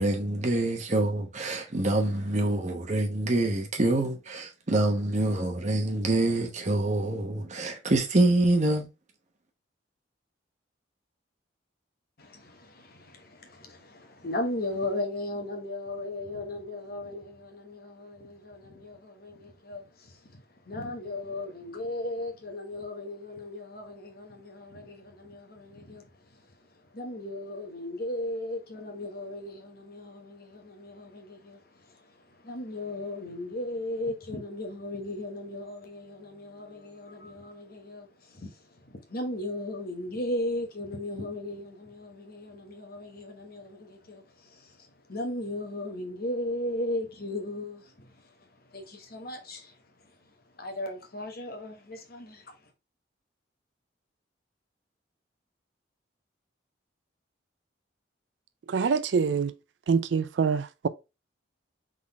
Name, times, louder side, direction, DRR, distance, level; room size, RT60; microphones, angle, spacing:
voice 1, 0.0-8.9, right 2 dB, 40° right, 1.0 m, -26 dB
voice 2, 12.2-52.7, left 1 dB, 55° left, 1.1 m, -37 dB
voice 3, 58.7-59.5 59.9-60.9, right 5 dB, 70° right, 0.4 m, -25 dB
3.8 x 3.8 x 3.4 m
head